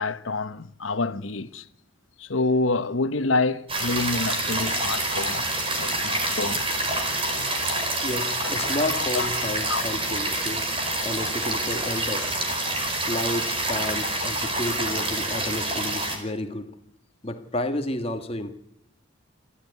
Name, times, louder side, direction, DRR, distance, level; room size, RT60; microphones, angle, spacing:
voice 1, 0.0-1.6 2.2-5.4 5.8-6.9 7.1-7.5 8.9-9.3 9.7-9.9, left 3 dB, 85° left, 1.1 m, -28 dB
sound 1, 3.7-16.2, right 2 dB, 30° right, 4.8 m, -27 dB
voice 2, 8.0-10.7 11.0-12.4 13.1-16.8 17.2-18.5, left 1 dB, 30° left, 1.6 m, -31 dB
28.5 x 13.0 x 9.6 m
head